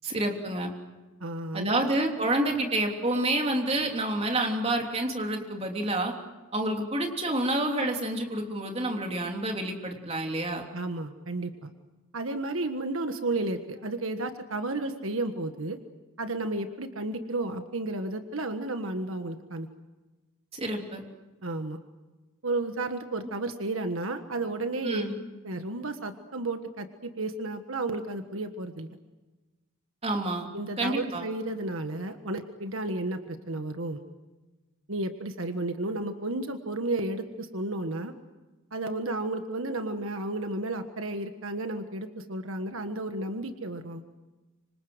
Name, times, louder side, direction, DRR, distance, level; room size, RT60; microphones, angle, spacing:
voice 1, 0.0-0.7 1.5-6.1 6.5-10.6 20.5-21.0 24.8-25.1 30.0-30.5 30.8-31.2, right 1 dB, 30° right, 2 dB, 3.3 m, -28 dB
voice 2, 1.2-1.9 10.7-11.7 12.1-15.8 16.2-19.7 21.4-21.8 22.4-25.0 25.4-29.0 30.5-34.0 34.9-38.1 38.7-44.0, right 2 dB, 75° right, 7 dB, 1.5 m, -32 dB
26.0 x 26.0 x 8.0 m, 1.2 s
head